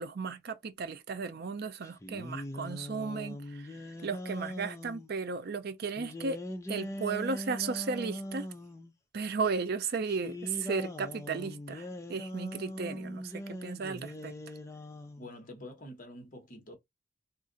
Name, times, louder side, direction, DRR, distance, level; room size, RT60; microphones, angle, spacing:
voice 1, 0.0-6.4 6.7-8.5 9.1-14.3, right 4 dB, 50° right, 0.5 m, -35 dB
Shri Rama jai Rama jai jai Rama, 1.8-5.1 6.0-8.9 10.1-15.3, left 1 dB, 15° left, 0.4 m, -41 dB
voice 2, 15.2-16.8, left 1 dB, 40° left, 1.1 m, -47 dB
2.6 x 2.5 x 3.8 m
head